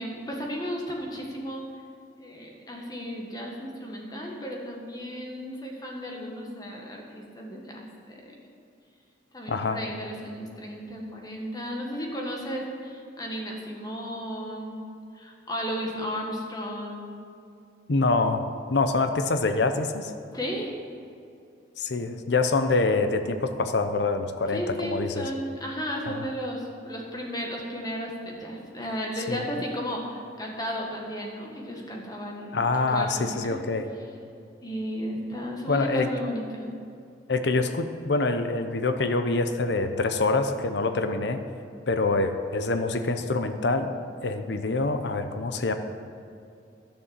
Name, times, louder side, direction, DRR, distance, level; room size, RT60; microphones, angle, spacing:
voice 1, 0.0-1.6 2.2-8.3 9.3-14.8 15.1-17.0 20.3-20.7 24.5-33.6 34.6-36.7, equal, 20° left, -1 dB, 1.6 m, -34 dB
voice 2, 9.5-9.8 17.9-20.1 21.8-25.2 26.1-26.2 29.3-29.4 32.5-33.9 35.7-36.1 37.3-41.4 41.9-43.9 44.2-45.7, left 3 dB, 70° left, 8 dB, 0.7 m, -25 dB
11.5 x 7.0 x 7.4 m, 2.4 s
head